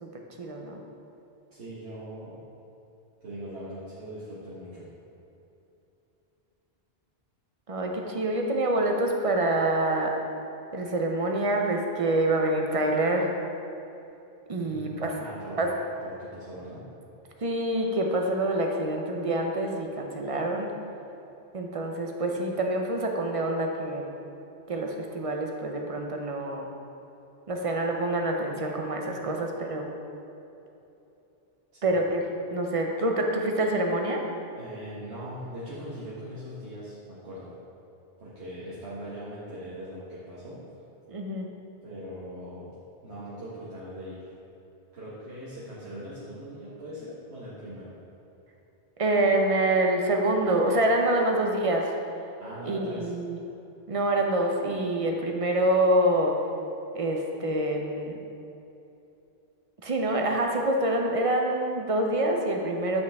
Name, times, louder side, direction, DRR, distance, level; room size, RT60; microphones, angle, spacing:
voice 1, 0.0-0.8 7.7-10.1 10.7-13.3 14.5-15.2 15.6-15.7 17.4-20.7 21.5-24.1 24.7-26.7 27.5-29.9 31.8-32.2 32.5-34.2 41.1-41.5 49.0-51.9 52.6-53.4 53.9-56.3 56.9-58.1 59.8-63.0, right 1 dB, 40° right, 1 dB, 0.6 m, -26 dB
voice 2, 1.5-2.4 3.2-4.9 14.6-15.6 16.0-16.9 31.7-32.0 34.6-37.5 38.2-40.6 41.8-42.7 43.0-44.3 44.9-47.9 52.4-53.1, equal, 75° right, -11 dB, 1.5 m, -40 dB
8.3 x 5.3 x 3.4 m, 2.9 s
omnidirectional pair, 1.1 m